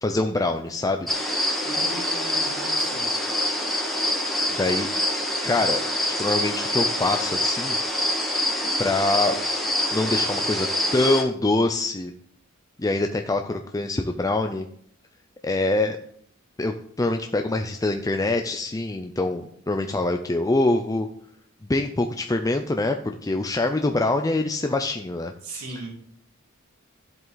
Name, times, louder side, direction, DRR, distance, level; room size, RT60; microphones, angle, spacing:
voice 1, 0.0-1.1 4.6-4.9 5.4-5.8 6.1-7.8 8.8-9.4 9.9-10.7 10.9-12.1 12.8-14.7 15.4-16.0 16.6-21.1 21.7-25.3, left 2 dB, 15° left, 5 dB, 0.5 m, -24 dB
sound 1, 1.1-11.2, left 1 dB, ahead, 1.8 m, -25 dB
voice 2, 1.6-3.1 25.4-25.9, right 2 dB, 70° right, -3 dB, 3.8 m, -38 dB
12.0 x 7.8 x 4.0 m, 0.65 s
head